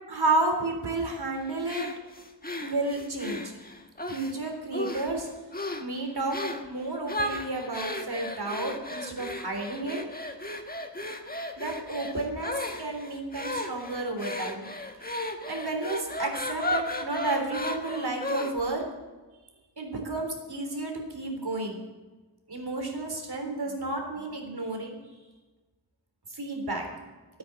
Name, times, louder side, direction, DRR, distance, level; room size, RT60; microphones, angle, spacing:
voice 1, 0.1-1.9 2.6-3.5 4.1-5.3 5.8-10.0 11.6-14.7 15.1-18.8 19.8-21.8 22.5-25.0 26.3-26.8, right 2 dB, 65° right, 3 dB, 3.7 m, -31 dB
sound 1, 1.7-4.3 4.7-5.2 5.5-5.9 6.3-6.7 7.1-18.8, left 1 dB, 20° left, 1.4 m, -35 dB
14.0 x 9.5 x 8.0 m, 1.2 s
wide cardioid pair, 70°, 41 cm